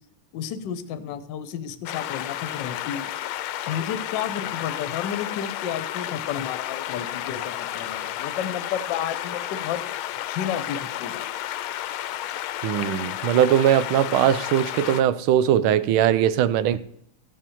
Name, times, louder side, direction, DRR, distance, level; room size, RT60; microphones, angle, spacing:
voice 1, 0.3-3.1 3.7-9.8 10.3-11.1, left 9 dB, 65° left, 11 dB, 1.3 m, -31 dB
sound 1, 1.9-15.0, left 13 dB, 90° left, 1.4 m, -32 dB
voice 2, 12.6-16.8, right 10 dB, 85° right, 16 dB, 1.5 m, -20 dB
14.5 x 5.4 x 7.0 m, 0.75 s
omnidirectional pair, 2.2 m